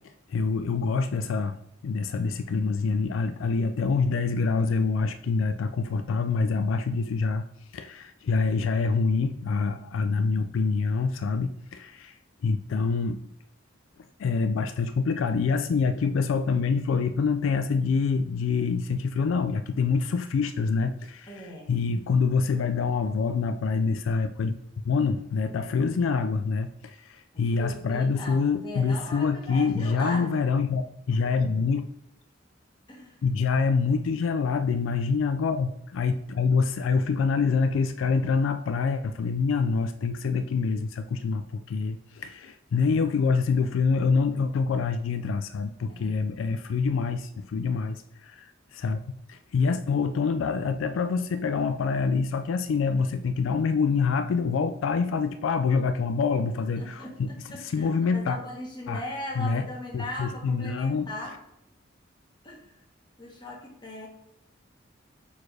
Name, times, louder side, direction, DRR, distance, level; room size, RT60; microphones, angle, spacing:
voice 1, 0.3-1.6 1.8-7.4 7.7-12.2 12.4-13.3 14.2-24.5 24.8-31.8 33.2-49.0 49.3-58.4 58.9-59.0 59.4-59.7 59.9-61.1, left 5 dB, 85° left, 9 dB, 0.3 m, -26 dB
voice 2, 21.3-21.8 27.5-30.3 32.9-33.2 45.9-46.2 56.8-61.4 62.4-62.7 63.2-64.1, left 1 dB, 25° left, -2 dB, 1.4 m, -39 dB
4.7 x 4.2 x 4.7 m, 0.80 s
head